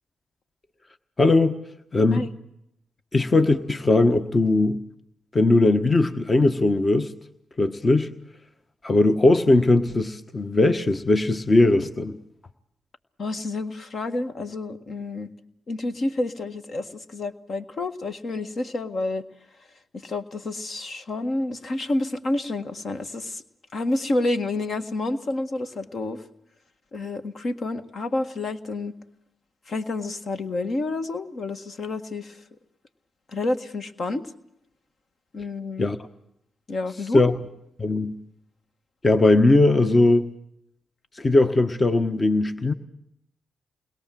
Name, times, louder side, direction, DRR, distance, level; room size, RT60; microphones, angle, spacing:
voice 1, 1.2-1.6 1.9-2.3 3.1-4.8 5.3-7.1 7.6-8.1 8.8-12.2 35.8-36.0 37.1-37.3 37.8-38.1 39.0-40.3 41.1-42.7, left 2 dB, 35° left, 9 dB, 1.4 m, -19 dB
voice 2, 13.2-15.3 15.7-19.2 20.0-23.4 23.7-26.2 26.9-28.9 29.7-32.4 33.3-34.3 35.3-35.9 36.7-37.2, left 2 dB, 55° left, 8 dB, 1.7 m, -29 dB
28.5 x 21.5 x 7.7 m, 0.81 s
hypercardioid pair, 45°, 0 cm